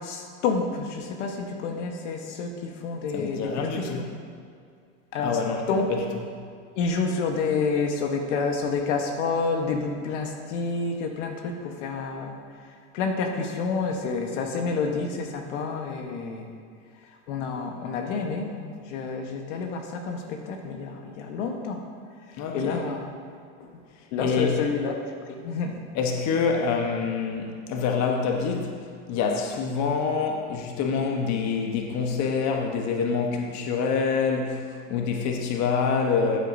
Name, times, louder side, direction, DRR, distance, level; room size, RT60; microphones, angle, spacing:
voice 1, 0.0-4.1 5.1-5.4 5.7-5.9 6.8-12.4 12.9-16.5 17.3-21.8 22.5-23.1 24.1-25.7, left 4 dB, 75° left, 3 dB, 1.3 m, -29 dB
voice 2, 3.1-4.0 5.2-5.9 22.4-22.8 23.6-23.7 24.2-24.6 25.9-28.7 29.1-34.6 34.9-36.4, left 5 dB, 50° left, 2 dB, 1.2 m, -26 dB
14.0 x 7.9 x 2.7 m, 2.3 s
supercardioid pair, 110°, 37 cm